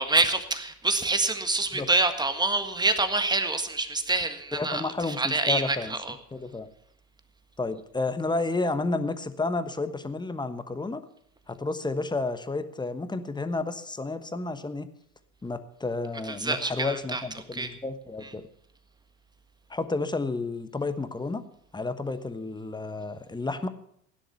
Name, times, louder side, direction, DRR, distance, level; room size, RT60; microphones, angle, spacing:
voice 1, 0.0-6.1 16.3-17.2 17.5-17.7, right 3 dB, 10° right, 9 dB, 1.6 m, -26 dB
voice 2, 4.5-5.9 6.3-6.7 7.6-11.0 11.5-14.9 15.4-18.5 19.7-21.4 21.7-23.7, left 3 dB, 10° left, 11 dB, 1.1 m, -31 dB
16.5 x 10.5 x 5.7 m, 0.69 s
figure-of-eight pair, 75°, 45 cm